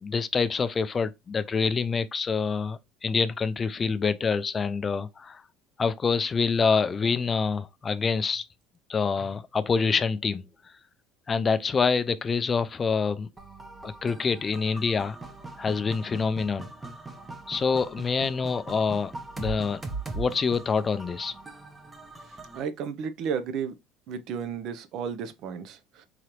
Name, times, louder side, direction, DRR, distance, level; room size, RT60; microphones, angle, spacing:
voice 1, 0.0-5.4 5.8-8.4 8.9-10.7 11.3-13.3 13.8-15.2 15.6-16.7 17.5-19.8 20.1-21.3, left 5 dB, 25° left, 0.3 m, -26 dB
sound 1, 13.4-22.6, right 3 dB, 15° right, 0.7 m, -41 dB
voice 2, 22.5-23.7 24.1-26.1, right 7 dB, 55° right, 0.6 m, -33 dB
3.8 x 3.1 x 2.9 m
supercardioid pair, 115°, 0 cm